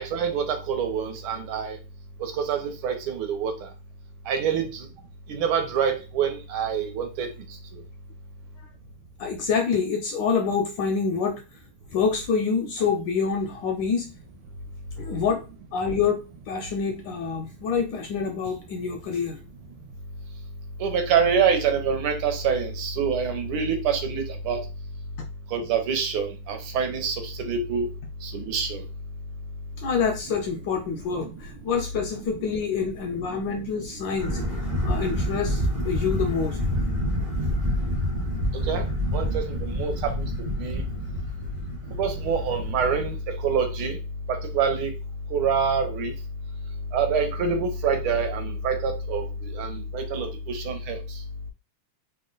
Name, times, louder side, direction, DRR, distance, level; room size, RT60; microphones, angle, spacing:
voice 1, 0.0-1.8 2.2-3.5 4.3-4.9 5.3-7.3 20.8-24.6 25.5-27.9 28.2-28.8 31.1-31.3 32.3-32.4 33.3-33.4 38.7-38.8 39.1-40.1 40.6-40.8 42.0-43.2 43.4-44.0 44.3-44.9 45.3-46.1 46.9-51.0, right 6 dB, 75° right, 5 dB, 1.6 m, -26 dB
voice 2, 9.2-11.4 11.9-14.1 15.0-15.4 15.7-16.2 16.5-19.4 29.8-34.4 34.8-36.6, left 5 dB, 75° left, 4 dB, 1.1 m, -26 dB
sound 1, 34.2-43.2, equal, 40° right, 0.5 m, -28 dB
3.6 x 2.2 x 3.7 m, 0.30 s
omnidirectional pair, 2.4 m